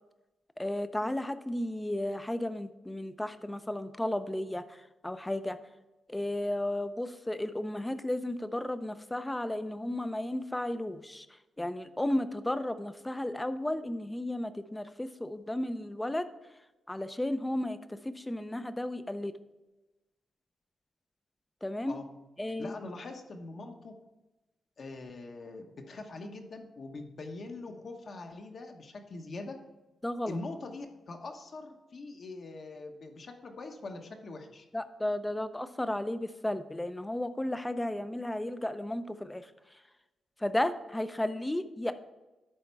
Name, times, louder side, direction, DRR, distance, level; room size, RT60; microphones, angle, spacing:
voice 1, 0.6-4.6 5.0-5.6 6.1-11.3 11.6-16.3 16.9-19.3 21.6-22.0 22.4-22.8 30.0-30.4 34.7-39.5 40.4-41.9, left 1 dB, 10° left, 12 dB, 0.5 m, -33 dB
voice 2, 22.6-24.0 24.8-29.6 30.3-34.6, left 3 dB, 50° left, 4 dB, 1.1 m, -43 dB
11.0 x 4.3 x 4.6 m, 1.1 s
cardioid pair, 115°, 0 cm